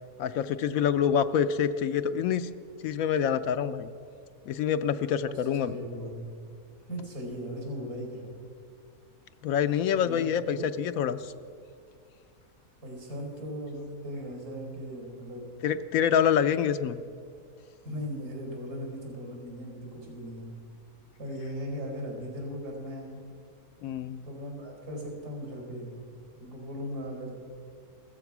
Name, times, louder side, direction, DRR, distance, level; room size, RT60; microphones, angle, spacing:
voice 1, 0.2-2.5 2.8-3.9 4.5-5.8 9.4-11.3 15.6-17.0 23.8-24.2, left 8 dB, 75° left, 12 dB, 1.0 m, -26 dB
voice 2, 5.2-6.2 6.9-8.3 10.0-10.7 12.8-15.4 17.8-20.5 21.2-23.2 24.2-26.0 26.4-27.4, equal, 80° right, 0 dB, 4.9 m, -38 dB
15.5 x 14.0 x 6.0 m, 2.2 s
omnidirectional pair, 1.6 m